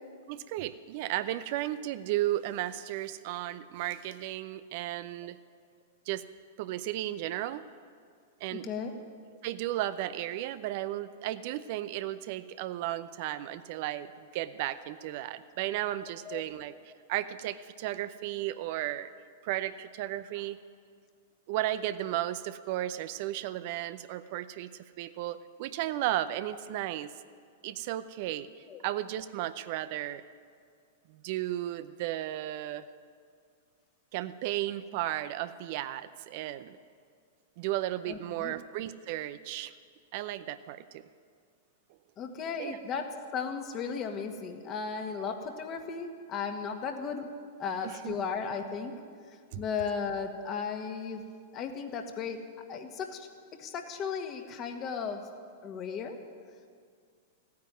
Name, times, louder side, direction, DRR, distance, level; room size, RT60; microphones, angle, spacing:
voice 1, 0.3-5.4 6.1-6.2 6.6-7.6 8.4-8.7 9.4-16.7 17.1-19.1 19.4-20.6 21.5-27.1 27.6-28.5 28.8-30.2 31.1-32.9 34.1-36.8 37.6-39.7 40.1-41.1 42.6-42.8 47.8-48.2 49.5-49.6, right 14 dB, 50° right, 13 dB, 0.6 m, -34 dB
voice 2, 8.5-8.9 16.3-16.4 28.7-28.8 38.1-38.5 42.2-47.3 47.6-49.0 49.5-51.2 51.5-52.4 52.7-53.3 53.6-55.3 55.6-56.2, left 6 dB, 35° left, 5 dB, 1.7 m, -35 dB
15.5 x 9.5 x 9.6 m, 2.1 s
hypercardioid pair, 100°, 0 cm